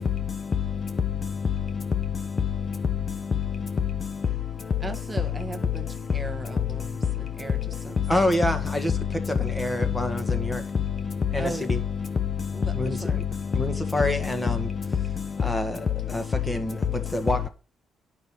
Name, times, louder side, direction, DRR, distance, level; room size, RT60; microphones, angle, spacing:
voice 1, 0.0-4.3 8.0-15.4, left 7 dB, 40° left, 0.7 m, -28 dB
voice 2, 4.8-5.9 6.1-7.6 7.8-8.3 11.4-11.7 12.5-12.7 13.0-13.2, right 3 dB, 15° right, 1.3 m, -37 dB
voice 3, 8.1-8.9 9.4-10.6 11.3-11.8 12.7-13.0 13.5-14.7 15.4-15.8 16.1-17.5, left 1 dB, 10° left, 1.7 m, -27 dB
9.2 x 5.5 x 5.8 m
cardioid pair, 90°, 0 cm